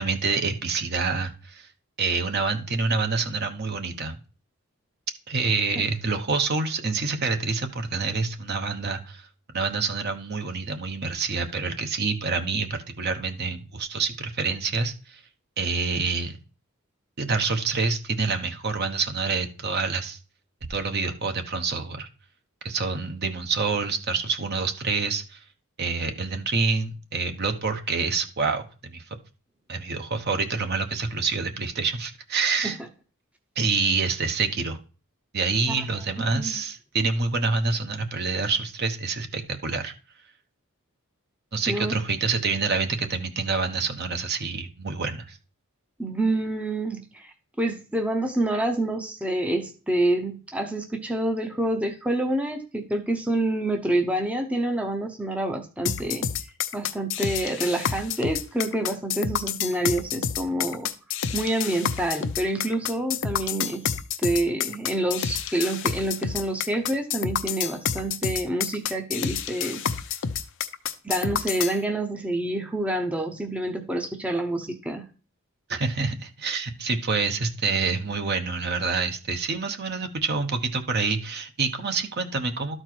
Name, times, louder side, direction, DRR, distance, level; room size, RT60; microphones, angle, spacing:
voice 1, 0.0-1.7 2.0-4.1 5.3-9.3 9.5-15.2 15.6-16.4 17.2-20.2 20.7-22.1 22.6-25.4 25.8-29.0 29.7-32.8 33.6-34.8 35.3-39.9 41.5-45.4 75.7-82.8, right 4 dB, 50° right, 6 dB, 1.0 m, -27 dB
voice 2, 41.7-42.0 46.0-56.3 56.7-60.9 61.3-63.9 64.2-69.8 71.0-75.0, right 1 dB, 5° right, 4 dB, 0.7 m, -27 dB
sound 1, 55.9-71.8, left 8 dB, 60° left, 0.6 m, -29 dB
12.5 x 4.5 x 4.5 m, 0.36 s
head